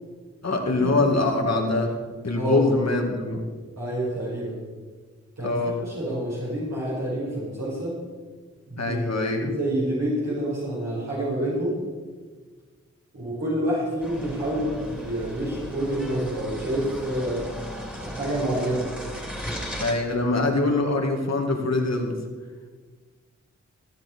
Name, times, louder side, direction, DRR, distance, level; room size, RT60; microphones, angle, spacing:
voice 1, 0.4-2.0 2.2-3.4 5.4-5.8 8.8-9.5 19.8-22.2, left 2 dB, 60° left, 2 dB, 2.1 m, -23 dB
voice 2, 3.8-4.6 5.4-7.9 8.7-9.0 9.4-11.8 13.1-17.5 17.9-18.9, right 1 dB, 65° right, -7 dB, 4.9 m, -28 dB
sound 1, 14.0-19.9, equal, 5° right, 3.2 m, -36 dB
20.5 x 7.8 x 4.6 m, 1.5 s
cardioid pair, 50°, 29 cm